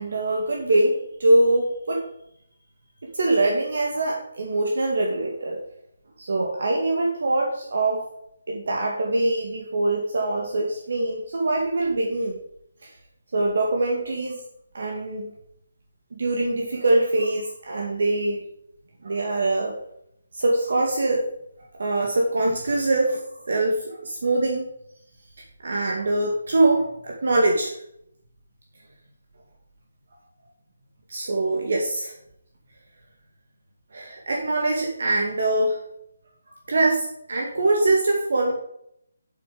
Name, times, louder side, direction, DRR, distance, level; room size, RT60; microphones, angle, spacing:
voice 1, 0.0-2.1 3.0-5.6 6.2-8.1 8.5-12.4 12.8-12.9 13.3-14.4 14.7-15.3 16.1-18.4 19.0-19.8 20.3-21.2 21.8-24.7 25.6-27.8 31.1-32.1 33.9-35.8 36.7-38.5, right 2 dB, 55° right, 0 dB, 2.0 m, -23 dB
8.0 x 8.0 x 5.0 m, 0.73 s
hypercardioid pair, 175°, 0 cm